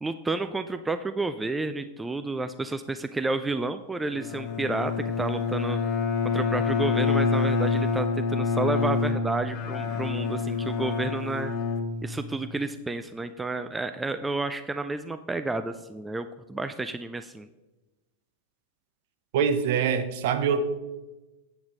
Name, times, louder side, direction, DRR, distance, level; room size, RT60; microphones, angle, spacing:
voice 1, 0.0-5.8 6.3-11.5 12.0-17.5, right 3 dB, 10° right, 10 dB, 0.4 m, -31 dB
Bowed string instrument, 4.2-12.6, left 4 dB, 35° left, 1.1 m, -27 dB
voice 2, 19.3-20.6, right 7 dB, 50° right, 9 dB, 0.8 m, -24 dB
8.6 x 7.9 x 3.7 m, 1.1 s
figure-of-eight pair, 90°, 0 cm